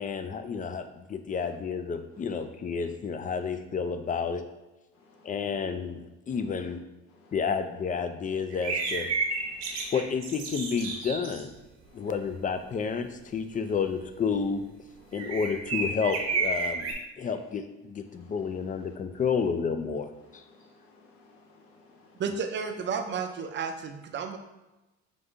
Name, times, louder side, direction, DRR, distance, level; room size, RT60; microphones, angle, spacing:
voice 1, 0.0-4.4 5.2-6.8 7.3-9.1 9.9-11.5 11.9-14.6 15.1-20.1 20.3-20.4, left 6 dB, 30° left, 9 dB, 0.4 m, -30 dB
voice 2, 4.9-5.5 7.1-7.4 9.3-9.9 11.8-12.1 15.0-15.4 18.1-19.0 20.2-22.2, left 3 dB, 75° left, 0 dB, 1.0 m, -58 dB
sound 1, 8.5-11.4 15.1-16.9, right 4 dB, 60° right, 1.0 m, -31 dB
voice 3, 22.1-24.4, right 6 dB, 40° right, 6 dB, 0.6 m, -32 dB
5.2 x 2.6 x 3.4 m, 1.0 s
cardioid pair, 95°, 29 cm